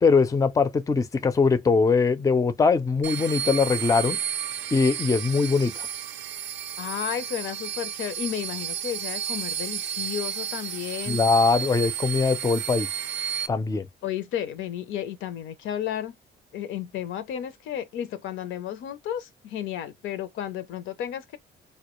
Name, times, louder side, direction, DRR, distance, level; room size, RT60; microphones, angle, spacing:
voice 1, 0.0-4.2 4.7-5.9 11.1-12.9 13.5-13.9, left 4 dB, 15° left, 0.4 m, -22 dB
sound 1, 3.0-13.5, right 9 dB, 70° right, 0.4 m, -32 dB
voice 2, 6.8-11.2 14.0-16.2 16.5-21.4, left 10 dB, 80° left, 0.5 m, -33 dB
2.1 x 2.1 x 2.9 m
cardioid pair, 90°, 20 cm